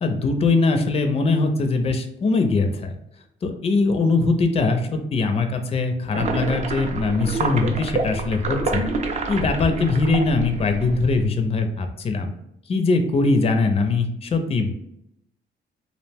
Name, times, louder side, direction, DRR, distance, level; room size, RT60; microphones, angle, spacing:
voice 1, 0.0-3.0 3.4-8.8 9.3-12.3 12.7-14.7, left 3 dB, 30° left, 7 dB, 0.4 m, -21 dB
sound 1, 6.1-11.3, right 3 dB, 35° right, 0.4 m, -28 dB
2.5 x 2.0 x 3.3 m, 0.80 s
cardioid pair, 90°, 20 cm